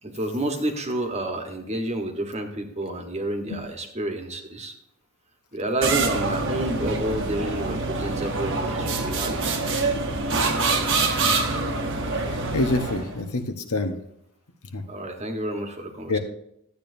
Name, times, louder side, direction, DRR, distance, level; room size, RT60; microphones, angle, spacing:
voice 1, 0.0-4.7 5.5-9.6 14.9-16.2, right 1 dB, 30° right, 4 dB, 1.2 m, -29 dB
sound 1, 5.8-13.2, right 3 dB, 55° right, 1.0 m, -25 dB
voice 2, 11.1-11.4 12.5-13.9 14.7-14.8 16.1-16.2, left 2 dB, 85° left, 7 dB, 1.0 m, -26 dB
12.5 x 8.8 x 2.6 m, 0.77 s
head